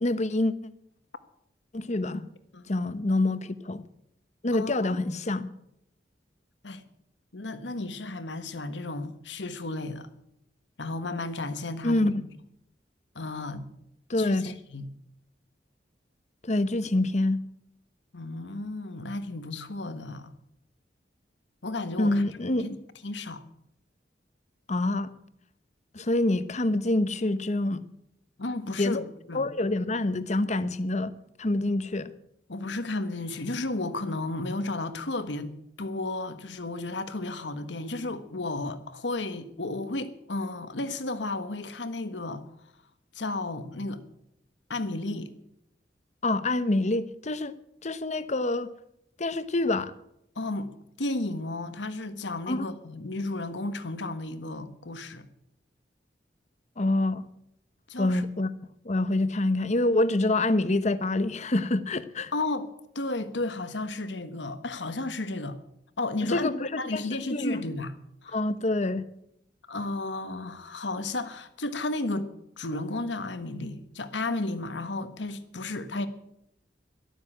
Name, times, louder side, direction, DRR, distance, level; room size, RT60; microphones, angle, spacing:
voice 1, 0.0-0.5 1.7-2.3 2.7-3.9 4.4-5.5 11.8-12.2 14.1-14.5 16.4-17.4 22.0-22.7 24.7-25.1 25.9-27.8 28.8-29.0 29.3-31.1 31.4-32.1 46.2-47.5 47.8-48.7 49.2-49.9 52.5-52.7 56.8-57.2 58.0-58.5 58.8-62.3 66.2-67.6 68.3-69.0, left 2 dB, 40° left, 0.9 m, -26 dB
voice 2, 4.5-5.0 6.6-6.8 7.3-10.1 10.8-12.2 13.1-13.7 14.2-14.9 18.1-20.3 21.6-22.2 22.6-22.8 23.0-23.4 28.4-29.4 32.5-42.4 43.1-44.0 44.7-45.3 50.3-50.7 51.0-55.3 57.9-58.2 62.3-62.7 62.9-65.6 66.0-67.9 68.2-68.4 69.7-76.1, left 2 dB, 85° left, 1.5 m, -33 dB
13.0 x 12.0 x 8.7 m
head